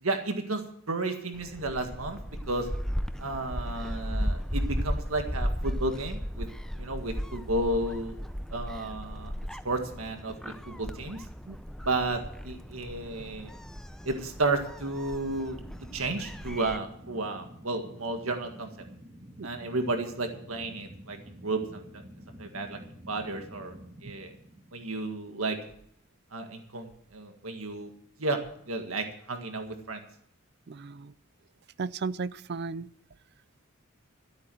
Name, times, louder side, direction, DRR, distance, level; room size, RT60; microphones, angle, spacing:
voice 1, 0.0-2.2 2.5-2.7 3.2-6.5 6.8-8.2 8.5-9.3 9.6-11.2 11.8-13.5 14.1-15.6 15.9-18.7 19.4-22.0 22.4-22.8 23.1-23.7 24.0-24.3 24.7-25.6 26.3-27.9 28.2-28.4 28.7-30.0, right 2 dB, 90° right, 5 dB, 1.8 m, -32 dB
Gull seagull, 1.3-16.8, equal, 5° left, 0.5 m, -36 dB
sound 1, 14.9-25.8, equal, 30° right, 1.9 m, -50 dB
voice 2, 30.7-31.1 31.8-32.9, right 4 dB, 50° right, 18 dB, 0.4 m, -35 dB
13.5 x 8.4 x 7.6 m, 0.66 s
head